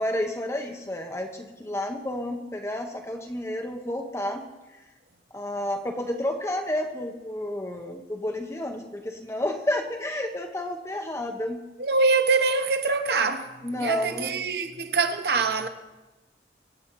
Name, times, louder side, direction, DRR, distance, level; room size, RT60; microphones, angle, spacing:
voice 1, 0.0-4.4 5.3-11.6 13.6-14.4, left 1 dB, 15° left, 0.8 m, -30 dB
voice 2, 11.8-15.7, right 4 dB, 65° right, 0.9 m, -24 dB
24.0 x 8.5 x 4.5 m
head